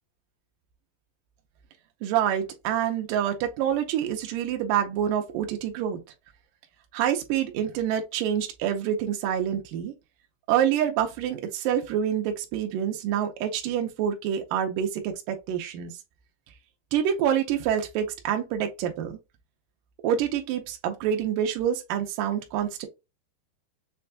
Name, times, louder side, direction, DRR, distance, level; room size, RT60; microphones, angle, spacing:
voice 1, 2.0-6.0 6.9-9.9 10.5-15.9 16.9-19.2 20.0-22.9, right 9 dB, 90° right, 1.9 m, -27 dB
6.3 x 2.2 x 2.5 m
omnidirectional pair, 4.7 m